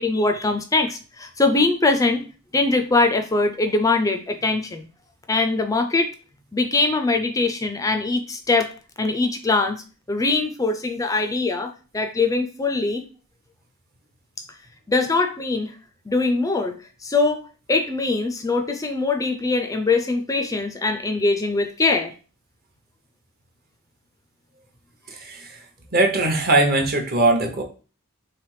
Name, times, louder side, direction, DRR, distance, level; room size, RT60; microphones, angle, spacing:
voice 1, 0.0-2.2 2.5-4.9 5.3-6.1 6.5-8.7 9.0-9.8 10.1-13.0 14.9-15.7 16.1-16.8 17.0-22.1, left 3 dB, 15° left, 5 dB, 0.4 m, -22 dB
voice 2, 25.1-25.5 25.9-27.6, right 2 dB, 40° right, 3 dB, 0.9 m, -20 dB
3.4 x 3.3 x 4.7 m, 0.36 s
head